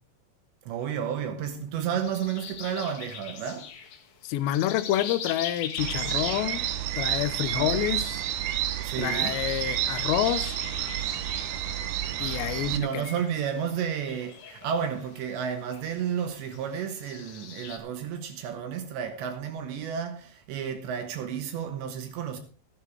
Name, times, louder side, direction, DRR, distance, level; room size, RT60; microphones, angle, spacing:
voice 1, 0.7-3.7 7.5-7.8 8.8-9.4 12.7-22.4, right 8 dB, 70° right, 3.2 m, -32 dB
sound 1, 2.0-17.8, left 7 dB, 60° left, 2.8 m, -43 dB
voice 2, 4.2-6.7 7.0-8.2 9.0-10.6 12.2-13.0, left 13 dB, 80° left, 2.7 m, -28 dB
sound 2, 5.8-12.8, right 12 dB, 85° right, 2.1 m, -30 dB
15.0 x 10.5 x 4.5 m
omnidirectional pair, 5.7 m